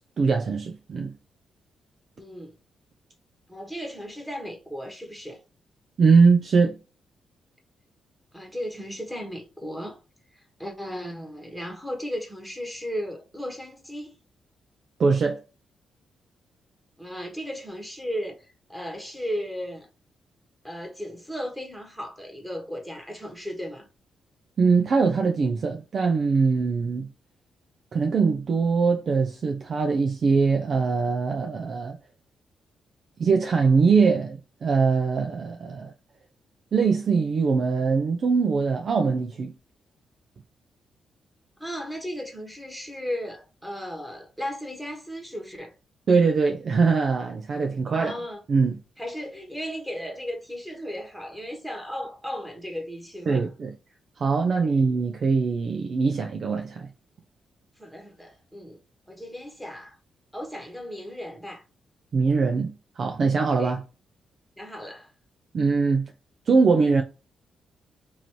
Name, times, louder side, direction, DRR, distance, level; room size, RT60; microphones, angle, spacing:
voice 1, 0.2-1.1 6.0-6.8 15.0-15.4 24.6-27.1 27.9-32.0 33.2-35.9 36.7-39.5 46.1-48.1 48.5-48.8 53.3-53.8 54.2-56.9 62.1-63.8 65.5-66.1 66.5-67.0, right 4 dB, 55° right, 0.5 m, -22 dB
voice 2, 2.2-2.5 3.5-5.4 8.3-10.0 10.6-14.2 17.0-19.9 20.6-23.9 41.6-45.7 47.6-48.4 49.0-53.4 54.6-54.8 57.8-58.8 59.1-60.0 60.3-61.6 63.6-63.7 64.6-65.1, equal, 5° right, 1.2 m, -35 dB
3.0 x 2.6 x 4.4 m
cardioid pair, 85°, 0 cm